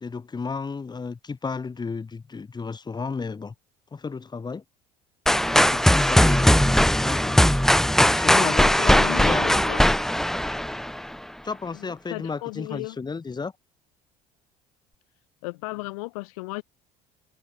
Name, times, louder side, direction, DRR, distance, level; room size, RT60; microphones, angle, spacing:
voice 1, 0.0-3.5 3.9-4.6 5.5-6.7 7.0-7.6 8.0-9.5 11.4-13.5, left 4 dB, 25° left, 1.9 m, -33 dB
sound 1, 5.3-11.2, equal, ahead, 0.8 m, -19 dB
voice 2, 8.3-9.8 11.8-13.0 15.4-16.6, left 25 dB, 80° left, 0.5 m, -35 dB
hypercardioid pair, 75°, 18 cm